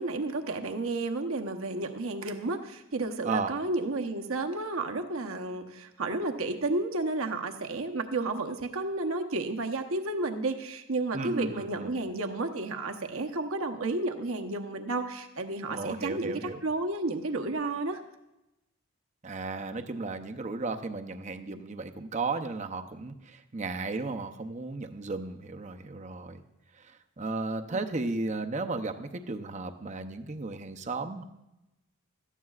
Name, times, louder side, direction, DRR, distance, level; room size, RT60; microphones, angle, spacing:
voice 1, 0.0-18.0 27.7-27.8, right 2 dB, 75° right, 5 dB, 0.9 m, -32 dB
voice 2, 11.1-11.9 15.7-16.6 19.2-26.4 27.2-31.2, right 3 dB, 35° right, 6 dB, 0.6 m, -34 dB
17.0 x 13.0 x 2.4 m, 0.94 s
head